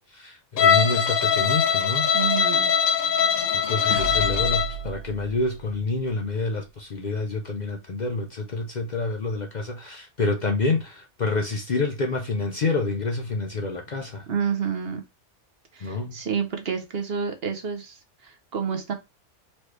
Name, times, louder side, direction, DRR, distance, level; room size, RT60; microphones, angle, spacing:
voice 1, 0.1-2.1 3.2-14.2 15.8-16.2, left 3 dB, 45° left, 0.6 m, -28 dB
Bowed string instrument, 0.6-4.8, left 7 dB, 80° left, 1.1 m, -22 dB
voice 2, 2.1-2.7 14.3-15.0 15.7-18.9, right 6 dB, 55° right, 0.9 m, -29 dB
sound 1, 3.0-6.2, right 1 dB, 60° left, 1.3 m, -34 dB
4.2 x 3.1 x 3.2 m
omnidirectional pair, 1.3 m